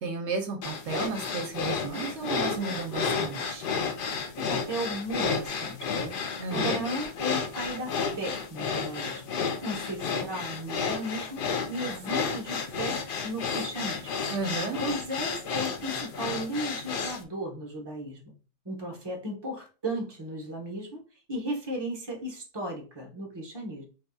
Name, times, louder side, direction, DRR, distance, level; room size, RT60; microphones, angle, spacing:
voice 1, 0.0-3.7 6.4-6.9 14.3-14.8, right 4 dB, 75° right, 4 dB, 0.9 m, -33 dB
sound 1, 0.6-17.2, left 5 dB, 60° left, 0.6 m, -32 dB
voice 2, 4.4-9.3 9.6-14.2 14.8-18.2 18.6-21.0 21.3-23.8, equal, 25° right, 0 dB, 0.9 m, -35 dB
4.1 x 2.6 x 2.2 m, 0.35 s
omnidirectional pair, 1.2 m